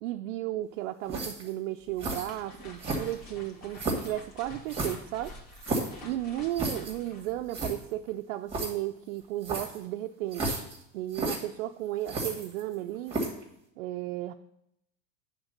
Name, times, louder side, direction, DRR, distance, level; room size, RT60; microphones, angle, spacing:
voice 1, 0.0-5.4 6.0-10.6 10.9-13.2 13.8-14.3, right 14 dB, 85° right, 5 dB, 0.6 m, -34 dB
sound 1, 1.1-1.5 2.0-2.3 2.8-3.3 3.8-4.1 4.7-6.0 6.6-6.9 7.2-7.3 7.5-7.8 8.5-8.7 9.4-9.8 10.3-10.8 11.1-11.4 12.1-12.7 13.1-13.4, right 2 dB, 15° right, 1.8 m, -32 dB
sound 2, 1.8-8.1, left 1 dB, 45° left, 2.2 m, -49 dB
8.9 x 4.0 x 6.5 m, 0.76 s
supercardioid pair, 145°, 37 cm